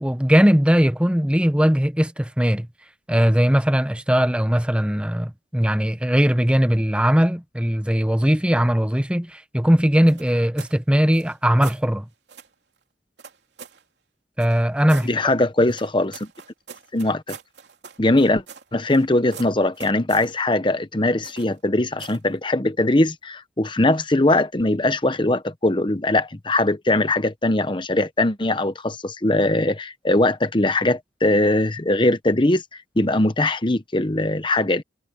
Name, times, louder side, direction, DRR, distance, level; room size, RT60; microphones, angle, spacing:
voice 1, 0.0-2.7 3.1-12.1 14.4-15.1, equal, 5° right, 0.9 m, -19 dB
sound 1, 10.1-10.8 11.1-11.8 12.3-12.5 13.2-13.8 14.4-15.1 15.7-19.0 19.3-20.3 21.2-21.6 22.0-22.3, right 6 dB, 80° right, 3.0 m, -42 dB
voice 2, 15.0-16.3 16.9-17.4 18.0-18.4 18.7-32.6 33.0-34.8, left 2 dB, 30° left, 1.1 m, -21 dB
head